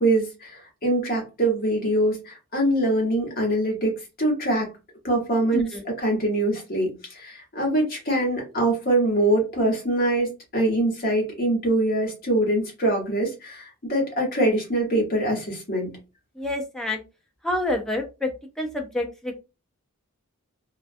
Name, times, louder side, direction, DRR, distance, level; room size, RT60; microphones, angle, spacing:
voice 1, 0.0-3.9 4.2-4.7 5.0-16.0, right 1 dB, 45° left, 0 dB, 1.0 m, -24 dB
voice 2, 16.4-17.0 17.4-18.3 18.6-19.4, left 1 dB, ahead, 2 dB, 0.4 m, -27 dB
2.4 x 2.2 x 2.5 m, 0.28 s
head